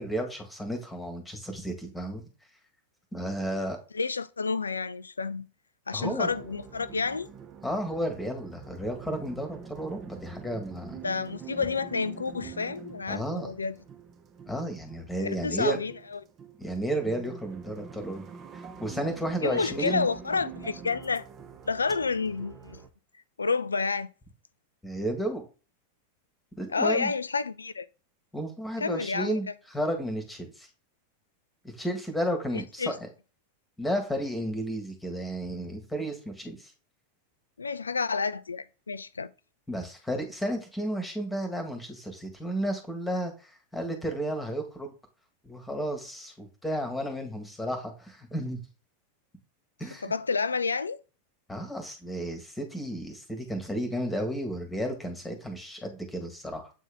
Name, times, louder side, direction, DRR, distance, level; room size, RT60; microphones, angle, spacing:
voice 1, 0.0-2.2 3.1-3.8 5.9-6.3 7.6-11.0 13.1-13.5 14.5-15.8 16.6-18.2 18.5-20.1 24.8-25.4 26.6-27.1 28.3-30.7 31.6-33.0 33.8-36.7 39.7-44.9 45.4-48.6 49.8-50.1 51.5-56.7, right 1 dB, 5° left, 1.8 m, -32 dB
voice 2, 3.9-5.5 5.9-7.3 11.0-13.8 15.2-16.2 19.4-21.2 21.7-22.8 23.4-24.1 26.7-27.9 28.8-29.4 32.5-32.9 37.6-39.3 50.0-51.0, left 4 dB, 80° left, 0.4 m, -30 dB
sound 1, 6.0-22.9, right 7 dB, 30° right, 1.0 m, -46 dB
8.1 x 3.6 x 3.6 m
figure-of-eight pair, 90°, 0 cm